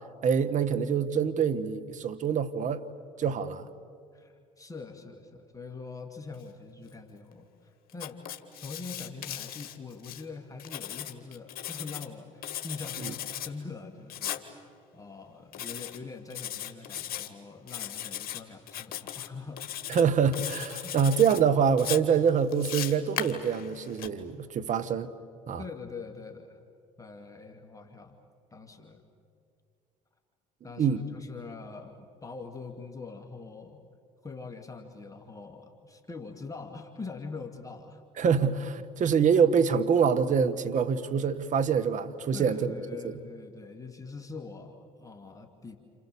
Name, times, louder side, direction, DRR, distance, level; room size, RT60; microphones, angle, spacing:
voice 1, 0.2-2.8 3.2-3.7 13.0-13.1 19.9-25.1 25.5-25.6 30.8-31.0 38.2-42.7 43.0-43.1, right 6 dB, 45° right, 1.6 m, -25 dB
voice 2, 4.1-8.2 8.6-19.6 20.8-21.1 25.6-26.6 27.0-28.2 28.5-29.0 30.6-33.8 34.2-38.0 38.8-38.9 42.3-45.8, left 4 dB, 20° left, 2.6 m, -43 dB
Writing, 7.9-10.2 10.6-12.1 12.4-13.5 14.1-14.4 15.5-16.0 16.3-17.3 17.7-18.4 18.7-19.3 19.6-20.0 20.3-21.4 21.8-24.1, left 11 dB, 60° left, 1.9 m, -37 dB
28.5 x 28.5 x 7.1 m
hypercardioid pair, 60°, 18 cm